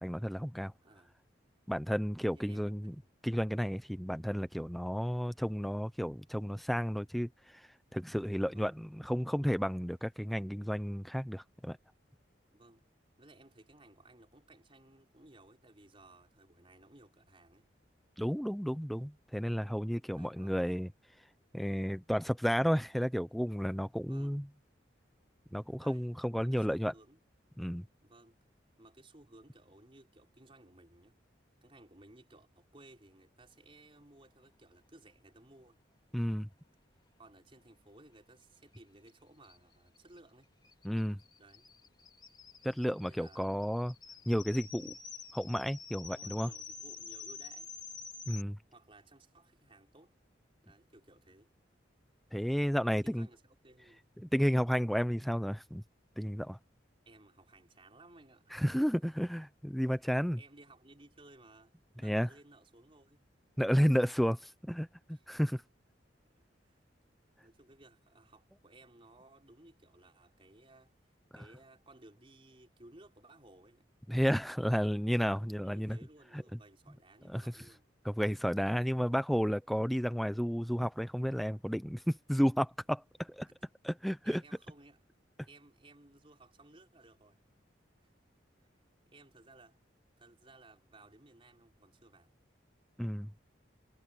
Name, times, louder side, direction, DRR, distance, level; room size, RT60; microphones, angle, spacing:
voice 1, 0.0-0.7 1.7-2.9 3.2-7.3 7.9-11.8 18.2-20.9 21.5-24.4 25.5-26.9 27.6-27.8 36.1-36.5 40.8-41.2 42.6-43.9 44.3-44.9 45.3-46.5 48.3-48.6 52.3-53.3 54.2-55.8 56.2-56.6 58.5-60.4 62.0-62.3 63.6-64.9 65.3-65.6 74.1-76.0 76.3-76.4 77.3-77.4 78.0-83.5 83.8-84.4 93.0-93.3, equal, ahead, 0.7 m, -32 dB
voice 2, 0.8-1.2 2.3-3.0 8.4-8.8 12.5-12.8 13.2-17.7 20.1-20.7 24.0-24.5 25.5-26.1 26.4-27.2 28.0-28.4 28.8-31.1 31.6-35.8 37.2-40.5 41.4-41.7 43.0-43.5 46.0-47.8 48.7-50.1 50.6-51.5 52.9-54.0 57.0-58.6 60.4-63.2 65.1-65.3 66.2-66.8 67.4-73.9 75.5-77.9 83.5-83.7 84.2-85.0 85.4-87.4 88.0-88.1 88.6-88.7 89.1-89.8 90.2-92.3, right 2 dB, 30° right, 4.6 m, -59 dB
sound 1, 38.7-38.8 39.1-39.2 39.4-48.4, left 5 dB, 25° left, 3.5 m, -49 dB
head